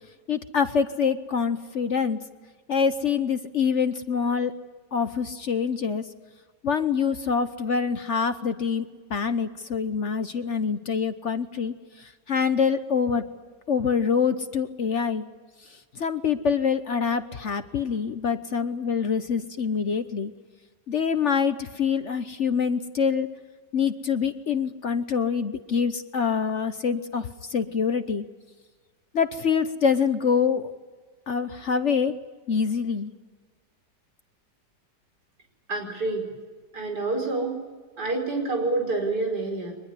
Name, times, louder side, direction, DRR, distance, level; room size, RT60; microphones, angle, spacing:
voice 1, 0.3-2.2 2.7-4.5 4.9-6.1 6.6-13.3 13.7-15.2 15.7-20.3 20.9-23.3 23.7-28.2 29.1-30.7 31.3-32.1 32.5-33.1, left 6 dB, 50° left, 10 dB, 1.1 m, -25 dB
voice 2, 35.7-36.2 36.7-37.6 38.0-39.7, right 3 dB, 65° right, 3 dB, 5.6 m, -27 dB
24.0 x 21.0 x 9.7 m, 1.4 s
omnidirectional pair, 1.9 m